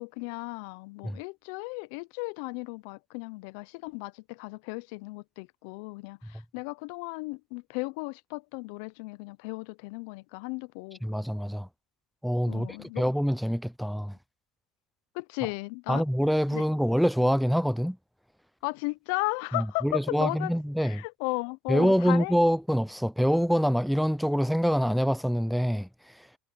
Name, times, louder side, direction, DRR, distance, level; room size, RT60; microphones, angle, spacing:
voice 1, 0.0-11.0 12.5-13.0 15.1-16.0 16.5-16.6 18.6-20.5 20.8-22.3, left 28 dB, 70° left, 0.5 m, -35 dB
voice 2, 11.0-11.7 12.2-14.2 15.9-18.0 19.5-21.0 21.7-25.9 26.1-26.3, equal, ahead, 0.4 m, -25 dB
supercardioid pair, 115°, 0 cm